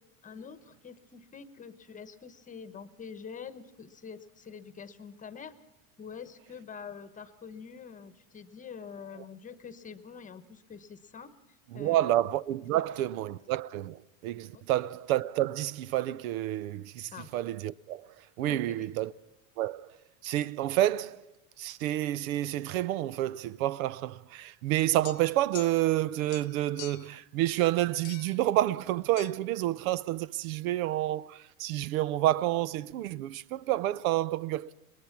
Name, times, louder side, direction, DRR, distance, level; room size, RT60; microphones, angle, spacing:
voice 1, 0.2-5.6 6.0-11.3 11.7-12.2 12.7-12.9 14.5-14.8 17.1-17.3 18.5-18.9, left 6 dB, 20° left, 1.0 m, -46 dB
voice 2, 11.7-18.1 18.4-19.1 19.6-19.9 20.2-21.2 21.6-34.7, right 14 dB, 85° right, 0.6 m, -29 dB
sound 1, 25.0-26.0 26.3-27.2 28.0-28.4 29.2-29.3, left 21 dB, 65° left, 0.9 m, -46 dB
22.5 x 20.5 x 5.9 m
supercardioid pair, 135°, 40 cm